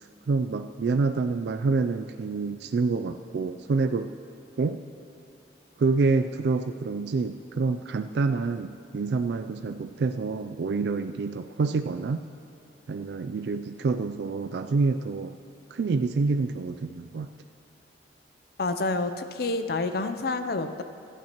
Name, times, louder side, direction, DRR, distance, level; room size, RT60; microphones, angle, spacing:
voice 1, 0.3-4.1 4.6-4.8 5.8-12.2 12.9-15.4 15.7-17.3, right 4 dB, 65° right, 8 dB, 0.3 m, -27 dB
voice 2, 18.6-20.8, left 3 dB, 55° left, 9 dB, 0.5 m, -28 dB
24.5 x 9.1 x 3.0 m, 2.7 s
head